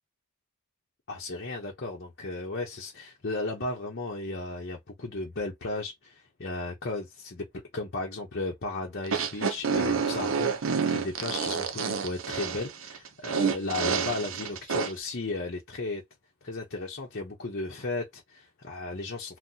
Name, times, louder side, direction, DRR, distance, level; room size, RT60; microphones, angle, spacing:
voice 1, 1.1-16.0 16.4-19.4, left 2 dB, 50° left, 0.8 m, -35 dB
sound 1, 9.0-14.9, right 5 dB, 65° right, 0.6 m, -28 dB
3.9 x 2.2 x 2.7 m
head